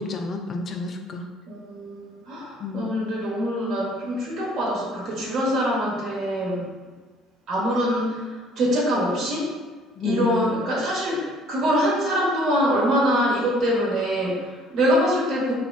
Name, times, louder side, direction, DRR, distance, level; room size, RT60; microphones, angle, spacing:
voice 1, 0.0-1.3 2.6-2.9 10.0-10.6, left 3 dB, 45° left, 4 dB, 0.4 m, -30 dB
voice 2, 1.5-6.7 7.5-9.5 10.0-15.5, equal, 55° right, -4 dB, 1.2 m, -24 dB
3.9 x 3.0 x 2.4 m, 1.4 s
hypercardioid pair, 60°, 0 cm